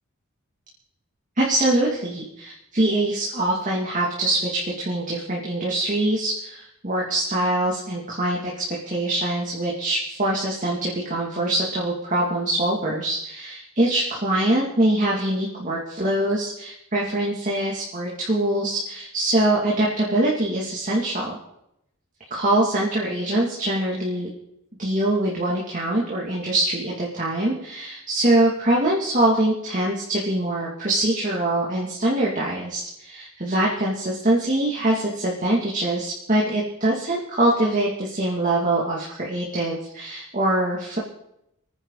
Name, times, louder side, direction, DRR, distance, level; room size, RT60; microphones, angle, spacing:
voice 1, 1.4-8.5 8.9-21.4 22.3-24.3 24.8-41.0, right 1 dB, 35° right, -4 dB, 2.8 m, -23 dB
27.5 x 10.0 x 4.2 m, 0.80 s
head